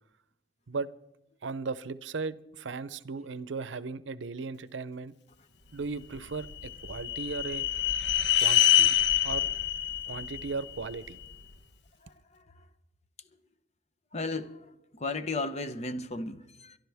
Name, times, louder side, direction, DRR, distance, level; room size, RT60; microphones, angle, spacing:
voice 1, 1.4-5.1 5.7-7.7 8.4-9.0 9.2-9.5 10.1-11.2, right 4 dB, 85° right, 0.6 m, -36 dB
sound 1, 6.1-11.3, left 11 dB, 65° left, 1.0 m, -26 dB
voice 2, 14.1-14.6 15.0-16.8, left 3 dB, 35° left, 0.8 m, -34 dB
23.5 x 11.5 x 3.5 m
head